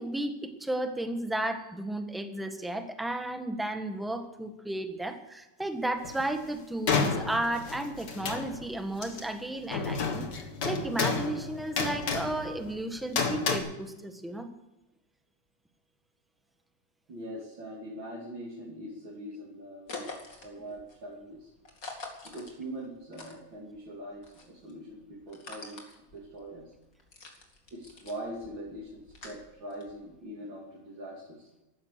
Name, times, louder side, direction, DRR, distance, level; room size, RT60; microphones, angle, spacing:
voice 1, 0.0-14.5, right 1 dB, ahead, 6 dB, 1.1 m, -33 dB
sound 1, 6.0-6.2 6.9-8.8 9.0-9.3 9.7-13.6, left 5 dB, 60° left, 2.2 m, -31 dB
voice 2, 17.1-21.5 22.2-25.8 26.1-26.7 27.7-31.6, right 1 dB, 70° right, -4 dB, 3.7 m, -42 dB
sound 2, 19.9-23.9 24.1-30.1, left 3 dB, 45° left, 2.8 m, -46 dB
14.5 x 12.5 x 6.6 m, 0.97 s
omnidirectional pair, 2.2 m